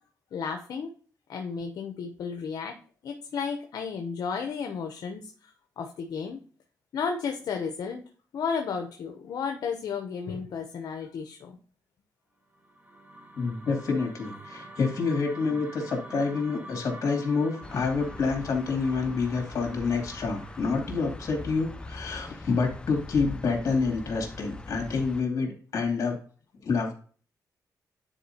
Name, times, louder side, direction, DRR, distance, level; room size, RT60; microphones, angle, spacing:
voice 1, 0.3-0.9 1.3-2.8 3.0-6.4 6.9-8.0 8.3-11.6, left 6 dB, 70° left, 5 dB, 0.7 m, -33 dB
sound 1, 12.5-22.8, right 1 dB, 25° right, 0.9 m, -47 dB
voice 2, 13.3-26.2 26.6-26.9, left 4 dB, 50° left, 2 dB, 2.5 m, -28 dB
sound 2, 17.6-25.2, left 2 dB, 15° left, 0.4 m, -42 dB
9.9 x 4.3 x 2.8 m, 0.43 s
cardioid pair, 115°, 7 cm